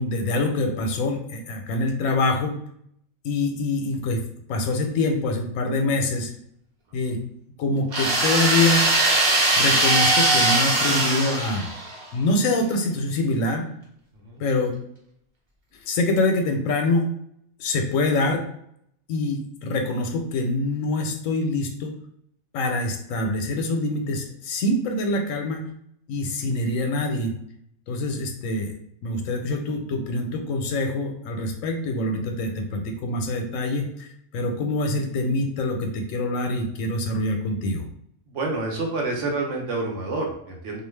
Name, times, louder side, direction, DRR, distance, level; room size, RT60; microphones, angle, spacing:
voice 1, 0.0-2.6 3.2-4.2 4.5-6.3 6.9-7.2 7.6-8.9 9.5-11.7 12.1-13.7 14.4-14.7 15.9-17.1 17.6-18.4 19.1-22.0 22.5-25.6 26.1-27.3 27.9-28.7 29.0-34.1 34.3-37.9, left 2 dB, 85° left, 3 dB, 1.0 m, -25 dB
sound 1, 7.9-12.0, right 2 dB, 45° right, 0.8 m, -20 dB
voice 2, 38.3-40.8, right 3 dB, 70° right, 0 dB, 1.0 m, -28 dB
2.4 x 2.3 x 3.2 m, 0.71 s
omnidirectional pair, 1.3 m